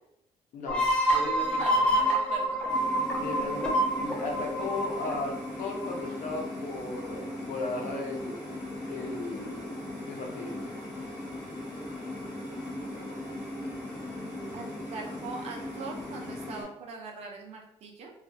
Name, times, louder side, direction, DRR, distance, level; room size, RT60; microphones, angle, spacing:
voice 1, 0.5-1.9 3.1-9.7 10.1-10.6, left 3 dB, 80° left, 0 dB, 0.8 m, -36 dB
sound 1, 0.7-6.1, right 1 dB, 10° left, 0.4 m, -27 dB
voice 2, 1.2-2.6 14.5-14.6 14.9-18.1, right 4 dB, 55° right, 1 dB, 0.6 m, -41 dB
sound 2, 2.7-16.6, left 1 dB, 30° left, 1.3 m, -38 dB
3.0 x 2.4 x 2.6 m, 0.78 s
cardioid pair, 180°, 13 cm